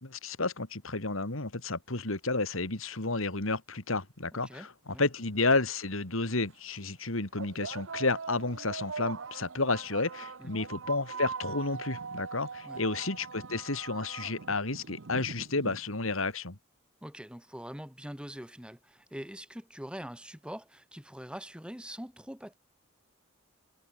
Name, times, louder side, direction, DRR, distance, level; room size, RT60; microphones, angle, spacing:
voice 1, 0.0-16.6, left 3 dB, 75° left, 2.9 m, -31 dB
voice 2, 4.3-5.0 10.4-10.6 12.6-12.9 17.0-22.5, equal, 5° right, 2.5 m, -44 dB
sound 1, 5.3-5.4 6.3-6.5 7.4-16.3, right 5 dB, 65° right, 0.9 m, -41 dB
head